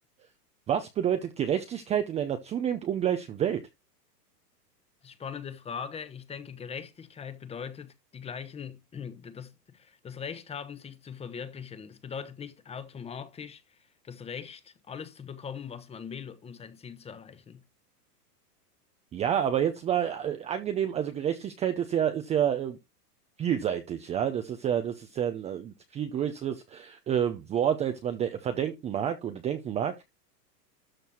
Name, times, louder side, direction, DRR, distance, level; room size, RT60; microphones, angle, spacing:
voice 1, 0.7-3.6 19.1-22.8 23.4-30.0, right 9 dB, 15° right, 0.6 m, -29 dB
voice 2, 5.0-17.6, left 7 dB, 15° left, 1.0 m, -41 dB
13.0 x 4.5 x 4.4 m
hypercardioid pair, 135°, 48 cm